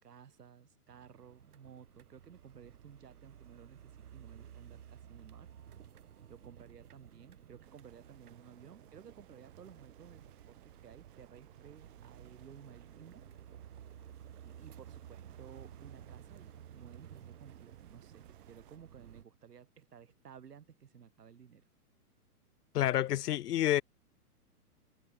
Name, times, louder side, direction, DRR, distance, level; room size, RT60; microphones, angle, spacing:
voice 1, 0.0-5.5 6.3-13.2 14.4-21.6, right 8 dB, 90° right, 5.3 m, -56 dB
sound 1, 0.9-19.2, right 9 dB, 70° right, 4.5 m, -54 dB
sound 2, 7.6-18.8, right 16 dB, 35° right, 1.9 m, -62 dB
voice 2, 22.7-23.8, left 13 dB, 90° left, 0.7 m, -29 dB
hypercardioid pair, 170°, 46 cm